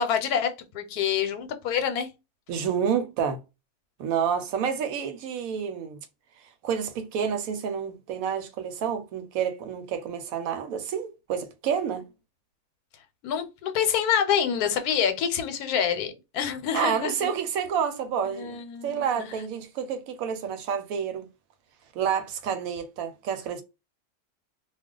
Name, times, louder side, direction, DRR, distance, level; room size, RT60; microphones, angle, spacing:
voice 1, 0.0-2.1 13.2-17.3 18.3-19.3, left 8 dB, 90° left, 1.1 m, -27 dB
voice 2, 2.5-3.4 4.0-6.1 6.6-12.0 16.7-21.3 21.9-23.6, right 7 dB, 70° right, 1.0 m, -29 dB
2.3 x 2.3 x 3.6 m
omnidirectional pair, 1.6 m